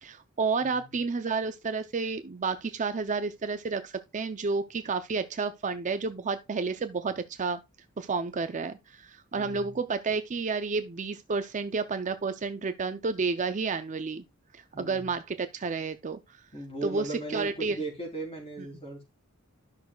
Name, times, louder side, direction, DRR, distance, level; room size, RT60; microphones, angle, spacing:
voice 1, 0.0-7.6 8.0-14.2 14.5-16.2 16.8-17.8, right 4 dB, 35° right, 0.5 m, -31 dB
voice 2, 0.6-1.0 9.3-9.8 14.7-15.1 16.5-19.0, right 2 dB, 25° left, 3.9 m, -38 dB
12.5 x 6.2 x 2.3 m
head